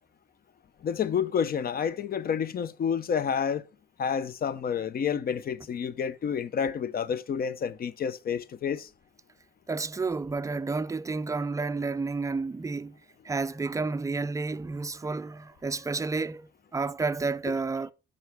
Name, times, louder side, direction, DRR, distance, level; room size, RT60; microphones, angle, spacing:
voice 1, 0.8-3.7 4.0-8.9, left 7 dB, 50° left, 0.6 m, -29 dB
voice 2, 9.7-13.0 13.2-17.9, right 4 dB, 15° right, 0.4 m, -31 dB
9.2 x 5.5 x 3.4 m
cardioid pair, 90°, 20 cm